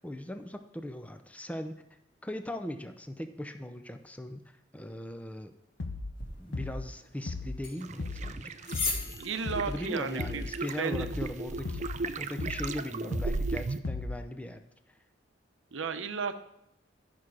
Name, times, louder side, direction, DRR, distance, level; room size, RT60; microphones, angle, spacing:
voice 1, 0.0-1.8 2.2-4.4 4.7-5.6 6.4-8.8 9.7-11.8 12.2-14.6 14.9-15.0, left 1 dB, 10° left, 8 dB, 0.6 m, -39 dB
sound 1, 5.8-6.2 6.5-6.9 7.3-7.6 8.0-8.4 8.7-9.1 9.5-9.8 10.2-10.6 10.9-11.3 11.6-12.0 12.4-12.8 13.1-13.5 13.8-14.3, left 3 dB, 80° left, 0.8 m, -36 dB
sound 2, 6.2-12.2, left 3 dB, 50° left, 2.1 m, -41 dB
sound 3, 7.8-13.8, right 3 dB, 40° right, 0.4 m, -36 dB
voice 2, 9.2-10.4 10.8-11.1 15.7-16.4, right 5 dB, 85° right, 9 dB, 0.7 m, -33 dB
12.0 x 6.0 x 4.8 m, 0.79 s
head